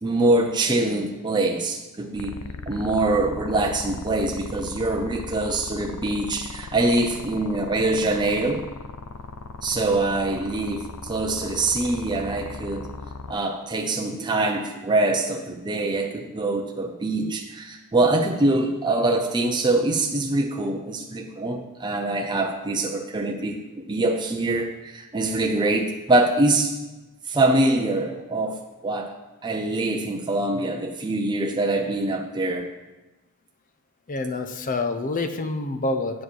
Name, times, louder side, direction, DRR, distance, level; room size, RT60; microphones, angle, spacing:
voice 1, 0.0-2.4 2.7-8.6 9.6-12.9 13.3-26.7 27.3-28.6 28.8-29.1 29.4-32.7, right 2 dB, 20° right, 2 dB, 0.5 m, -24 dB
sound 1, 2.1-13.3, left 3 dB, 85° left, 0.5 m, -37 dB
voice 2, 34.1-36.2, left 2 dB, 40° left, 9 dB, 0.6 m, -27 dB
8.3 x 4.9 x 6.2 m, 1.1 s
head